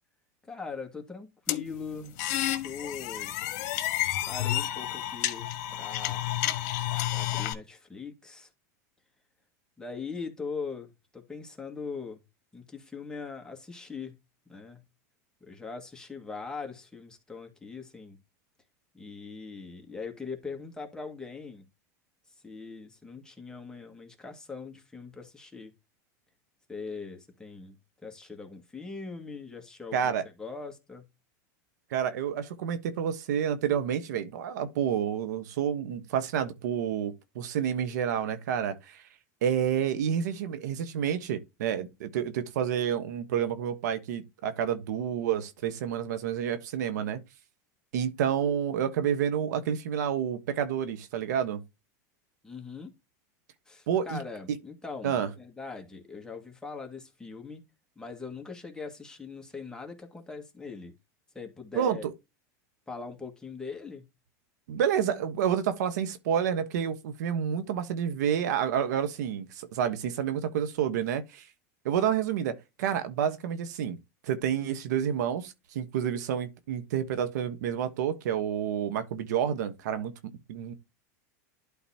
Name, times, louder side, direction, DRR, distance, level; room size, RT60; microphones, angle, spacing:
voice 1, 0.4-2.2 2.6-3.4 4.0-6.2 7.1-8.5 9.8-12.2 12.5-14.2 14.5-14.8 15.4-18.2 18.9-21.7 22.4-25.7 26.7-27.8 28.0-30.1 30.4-31.1 52.4-52.9 53.7-57.6 58.0-60.9 61.3-62.0 62.9-64.1, left 4 dB, 10° left, 2.0 m, -41 dB
sound 1, 1.5-7.5, left 14 dB, 65° left, 1.3 m, -30 dB
voice 2, 29.9-30.2 31.9-39.0 39.4-47.2 47.9-51.6 53.9-54.2 55.0-55.3 61.7-62.1 64.7-71.5 71.8-74.0 74.2-80.7, right 8 dB, 80° right, 1.3 m, -29 dB
11.5 x 4.0 x 2.9 m
supercardioid pair, 120°, 9 cm